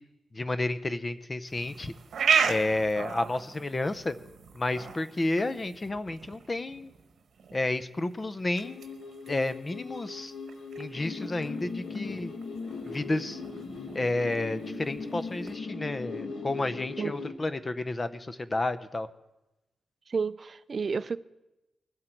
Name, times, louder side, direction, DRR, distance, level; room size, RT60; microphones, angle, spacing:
voice 1, 0.3-1.9 2.5-4.1 4.5-6.9 7.5-8.8 9.3-10.3 10.8-12.3 12.8-13.4 13.9-19.1, left 2 dB, 25° left, 12 dB, 0.6 m, -31 dB
sound 1, 1.5-15.6, right 6 dB, 70° right, 1.1 m, -36 dB
sound 2, 8.6-17.3, left 4 dB, 65° left, 1.6 m, -39 dB
voice 2, 20.1-21.2, right 5 dB, 45° right, 16 dB, 0.4 m, -30 dB
20.5 x 7.7 x 4.5 m, 0.97 s
wide cardioid pair, 120°, 0 cm